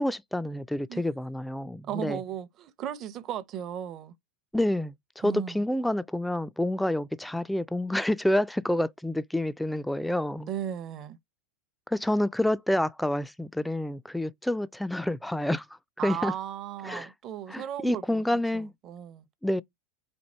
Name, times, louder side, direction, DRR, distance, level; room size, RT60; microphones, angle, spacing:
voice 1, 0.0-2.2 4.5-10.5 11.9-15.7 16.0-16.3 16.8-17.1 17.5-18.7 19.4-19.6, left 1 dB, 5° left, 0.3 m, -28 dB
voice 2, 1.8-4.1 5.2-5.6 10.5-11.2 16.0-19.2, right 10 dB, 40° right, 0.7 m, -36 dB
4.4 x 2.3 x 4.3 m
hypercardioid pair, 90°, 0 cm